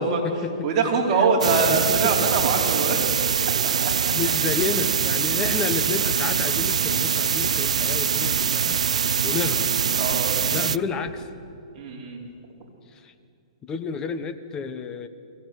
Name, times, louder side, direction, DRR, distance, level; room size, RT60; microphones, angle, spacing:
voice 1, 0.0-0.7 1.1-2.3 4.1-9.7 10.5-11.3 12.9-13.1 13.6-15.1, left 5 dB, 20° left, 9 dB, 1.3 m, -31 dB
voice 2, 0.6-3.0 3.8-3.9 10.0-10.3 11.7-12.2, right 4 dB, 30° right, -2 dB, 4.8 m, -23 dB
sound 1, 1.4-10.8, right 7 dB, 85° right, 0.4 m, -23 dB
sound 2, 5.0-11.2, right 1 dB, 10° right, 4.5 m, -44 dB
22.5 x 17.0 x 9.7 m, 2.5 s
hypercardioid pair, 150°, 3 cm